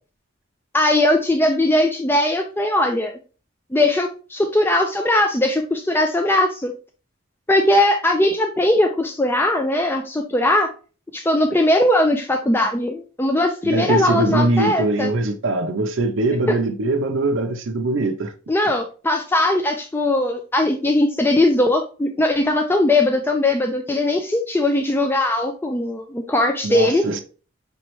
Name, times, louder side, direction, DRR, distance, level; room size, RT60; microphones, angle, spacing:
voice 1, 0.7-3.1 3.7-6.7 7.5-10.7 11.1-15.1 18.5-27.1, left 1 dB, 10° left, 0.4 m, -19 dB
voice 2, 13.6-18.3 26.6-27.2, right 2 dB, 65° right, 0.6 m, -22 dB
5.3 x 3.1 x 3.0 m
head